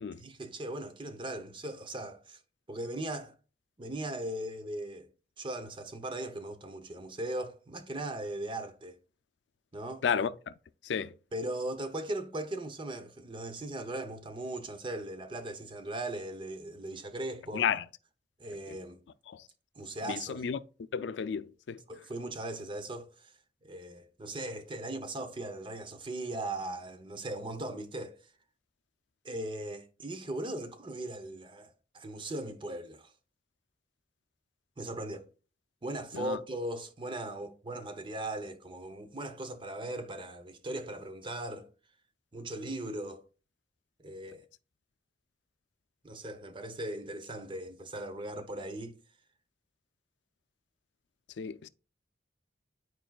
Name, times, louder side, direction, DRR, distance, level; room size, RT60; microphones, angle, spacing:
voice 1, 0.2-2.4 2.7-3.3 3.8-5.1 5.4-9.0 9.7-10.0 11.3-17.6 18.4-19.0 19.8-20.4 21.9-23.3 23.6-28.2 29.2-33.1 34.8-35.3 35.8-41.7 42.3-43.2 44.0-44.4 46.0-49.0, right 1 dB, 30° right, 0.7 m, -38 dB
voice 2, 17.5-17.8 18.7-18.8 19.3-19.4 20.1-20.6 20.9-21.8 36.1-36.4 51.4-51.7, left 7 dB, 85° left, 0.4 m, -32 dB
11.5 x 4.5 x 2.3 m
head